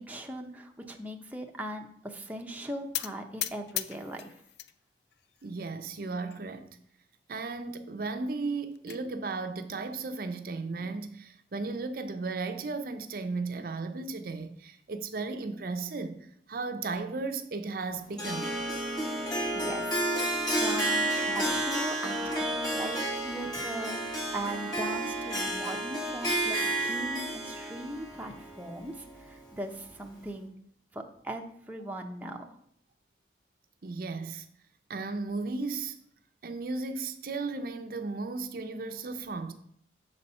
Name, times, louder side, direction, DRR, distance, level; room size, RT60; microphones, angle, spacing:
voice 1, 0.0-4.4 19.5-20.1 20.5-30.5 30.9-32.6, right 1 dB, 10° right, 0.6 m, -39 dB
sound 1, 2.9-4.7 5.1-5.7 6.3-6.4 6.7-6.8 7.1-7.2 8.4-9.0, left 12 dB, 65° left, 0.4 m, -37 dB
voice 2, 5.4-6.8 7.3-16.2 16.5-18.5 33.8-34.5 34.9-36.0 36.4-39.5, right 3 dB, 55° right, 0.5 m, -35 dB
Harp, 18.2-29.4, right 1 dB, 25° left, 2.3 m, -31 dB
7.0 x 4.2 x 5.4 m
head